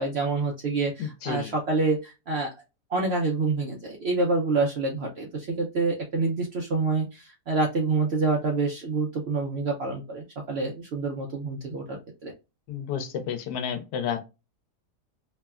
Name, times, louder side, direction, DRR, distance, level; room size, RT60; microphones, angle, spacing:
voice 1, 0.0-2.5 2.9-12.0 12.2-12.3, right 3 dB, 75° right, 0 dB, 0.6 m, -27 dB
voice 2, 1.0-1.6 12.7-14.2, left 8 dB, 85° left, 8 dB, 1.2 m, -31 dB
3.1 x 2.1 x 2.3 m, 0.26 s
omnidirectional pair, 1.7 m